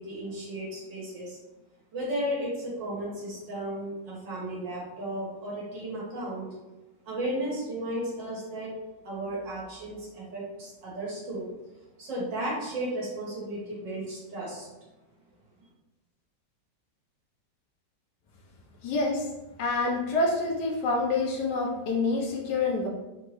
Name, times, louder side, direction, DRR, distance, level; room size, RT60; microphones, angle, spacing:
voice 1, 0.0-1.4 1.9-6.5 7.1-8.7 9.0-11.5 12.0-14.7, right 1 dB, 80° right, -6 dB, 1.9 m, -34 dB
voice 2, 18.8-19.3 19.6-22.9, left 3 dB, 75° left, -1 dB, 1.4 m, -27 dB
4.3 x 3.0 x 3.1 m, 1.0 s
omnidirectional pair, 1.9 m